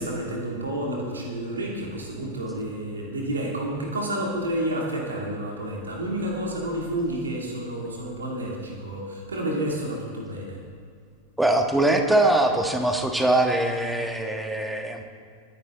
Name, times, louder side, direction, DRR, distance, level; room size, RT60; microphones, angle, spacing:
voice 1, 0.0-10.6, right 1 dB, 75° right, -2 dB, 2.9 m, -30 dB
voice 2, 11.4-15.1, right 1 dB, 5° right, 4 dB, 1.6 m, -22 dB
22.0 x 10.5 x 4.0 m, 2.2 s
figure-of-eight pair, 90°, 0 cm